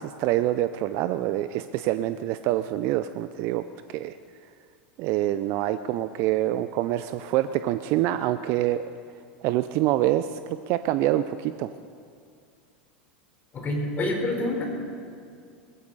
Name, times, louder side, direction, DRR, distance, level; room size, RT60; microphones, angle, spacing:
voice 1, 0.0-3.6 3.9-4.2 5.0-8.8 9.4-11.7, right 14 dB, 50° right, 12 dB, 0.5 m, -26 dB
voice 2, 13.5-14.6, left 1 dB, 30° left, 1 dB, 4.3 m, -27 dB
20.5 x 15.5 x 4.1 m, 2.4 s
figure-of-eight pair, 85°, 6 cm